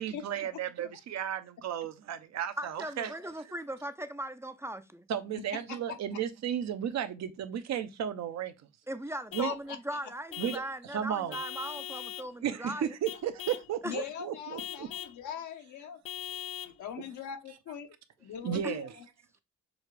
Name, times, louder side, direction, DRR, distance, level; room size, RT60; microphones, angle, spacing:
voice 1, 0.0-3.2 5.1-8.5 9.3-9.5 10.4-11.4 12.4-14.9 18.4-18.9, right 9 dB, 60° right, 0.7 m, -34 dB
voice 2, 2.6-5.1 8.9-12.9 13.8-13.9 18.6-18.8, right 1 dB, 10° right, 0.4 m, -39 dB
Vehicle horn car horn honking / Truck, 9.3-9.6 10.3-10.7 11.3-12.3 13.1-13.7 14.6-15.2 16.1-16.8, left 10 dB, 50° left, 0.5 m, -40 dB
voice 3, 9.4-9.8 13.8-16.0 16.6-17.9 18.2-19.0, left 9 dB, 75° left, 1.0 m, -40 dB
6.3 x 2.4 x 3.2 m
cardioid pair, 90°, 30 cm